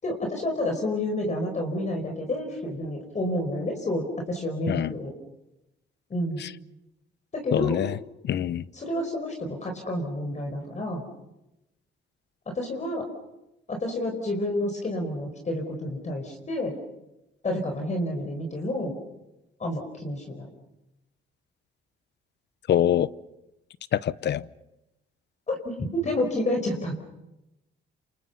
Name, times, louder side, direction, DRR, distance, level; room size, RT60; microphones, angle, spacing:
voice 1, 0.0-5.1 6.1-6.4 7.3-7.8 8.7-11.0 12.5-13.1 13.7-16.8 17.4-18.9 19.6-20.5 25.5-26.9, left 1 dB, 35° left, 3 dB, 4.9 m, -29 dB
voice 2, 7.5-8.0 8.2-8.6 22.7-23.1 23.9-24.5, left 10 dB, 60° left, 18 dB, 0.8 m, -24 dB
28.5 x 27.5 x 5.7 m, 0.92 s
cardioid pair, 90°, 20 cm